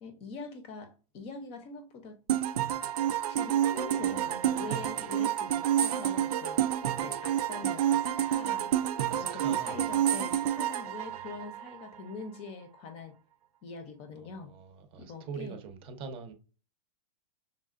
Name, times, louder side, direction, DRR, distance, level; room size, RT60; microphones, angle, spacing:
voice 1, 0.0-2.2 3.3-6.6 7.0-8.7 9.1-13.1 13.6-14.5 15.0-15.6, left 4 dB, 30° left, 0.7 m, -44 dB
sound 1, 2.3-12.0, right 11 dB, 75° right, 0.5 m, -29 dB
voice 2, 4.0-4.6 9.1-10.0 11.0-11.3 14.2-16.3, right 5 dB, 25° right, 0.7 m, -44 dB
5.7 x 3.4 x 2.5 m
hypercardioid pair, 145°, 20 cm